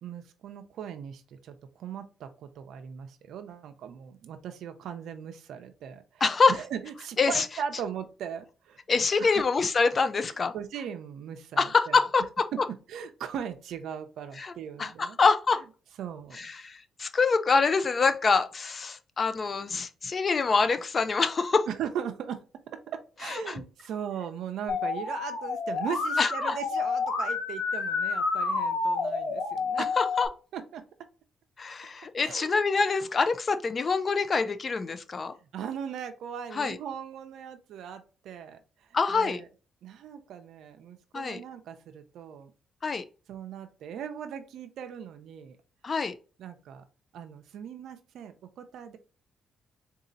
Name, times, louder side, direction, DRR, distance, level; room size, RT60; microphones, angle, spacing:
voice 1, 0.0-6.2 6.5-8.8 9.2-9.4 10.5-12.0 12.5-12.6 12.9-15.2 16.0-16.5 21.7-22.4 22.7-29.9 30.5-30.8 32.2-32.6 35.4-39.5 39.8-42.5 43.3-45.6 46.4-46.8 47.1-49.0, right 8 dB, 75° right, 0.5 m, -39 dB
voice 2, 6.2-6.5 7.2-7.5 8.9-10.5 11.6-12.5 14.4-14.5 14.8-15.6 16.3-21.7 23.2-23.6 26.2-26.6 30.0-30.3 31.6-35.3 36.5-36.8 38.9-39.4 41.1-41.4 42.8-43.0 45.8-46.1, left 4 dB, 40° left, 0.5 m, -25 dB
Musical instrument, 24.7-30.3, left 4 dB, 70° left, 1.0 m, -29 dB
4.0 x 2.7 x 3.9 m
cardioid pair, 90°, 0 cm